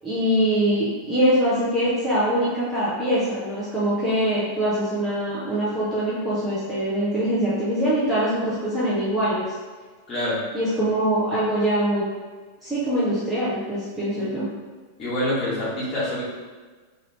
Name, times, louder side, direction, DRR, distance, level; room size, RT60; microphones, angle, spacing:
voice 1, 0.0-9.5 10.5-12.0 12.6-14.5, equal, 5° right, -11 dB, 0.8 m, -23 dB
voice 2, 10.1-10.4 15.0-16.2, left 1 dB, 25° left, -9 dB, 1.4 m, -26 dB
2.8 x 2.7 x 3.1 m, 1.4 s
figure-of-eight pair, 90°, 0 cm